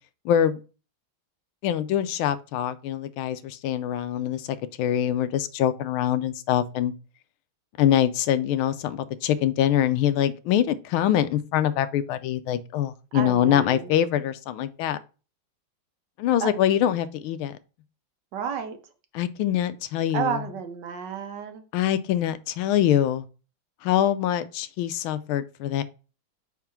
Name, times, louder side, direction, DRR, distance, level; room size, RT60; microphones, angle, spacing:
voice 1, 0.2-0.6 1.6-6.9 7.8-15.0 16.2-17.6 19.1-20.4 21.7-23.3 23.8-25.8, left 11 dB, 90° left, 1.4 m, -24 dB
voice 2, 13.1-13.9 16.4-16.5 18.3-18.8 20.1-21.6, right 7 dB, 65° right, 1.4 m, -31 dB
5.6 x 3.6 x 5.8 m
omnidirectional pair, 2.2 m